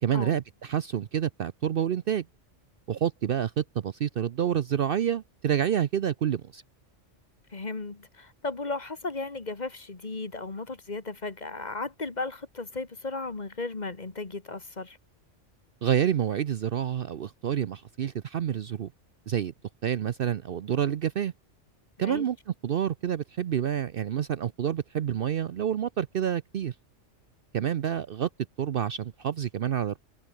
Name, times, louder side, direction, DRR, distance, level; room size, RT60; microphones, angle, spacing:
voice 1, 0.0-2.2 2.9-6.6 15.8-18.9 19.3-19.5 19.8-21.3 22.0-22.4 22.6-26.7 27.5-28.3 28.6-30.0, right 9 dB, 55° right, 0.7 m, -28 dB
voice 2, 7.5-15.0 22.0-22.3, left 3 dB, 35° left, 1.8 m, -35 dB
omnidirectional pair, 1.2 m